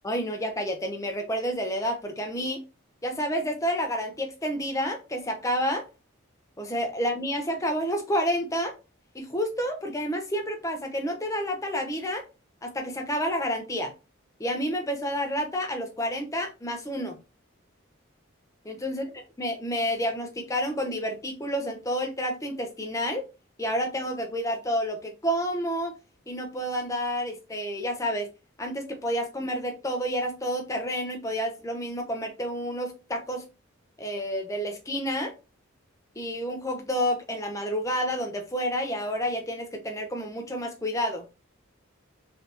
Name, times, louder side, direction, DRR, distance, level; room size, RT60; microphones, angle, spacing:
voice 1, 0.0-2.6 3.0-5.8 6.6-8.7 9.1-12.3 12.6-13.9 14.4-17.2 18.7-19.0 19.4-23.3 23.6-25.9 26.3-28.3 28.6-33.4 34.0-35.3 36.2-41.2, equal, 15° left, 4 dB, 0.6 m, -29 dB
3.3 x 2.6 x 2.8 m, 0.29 s
head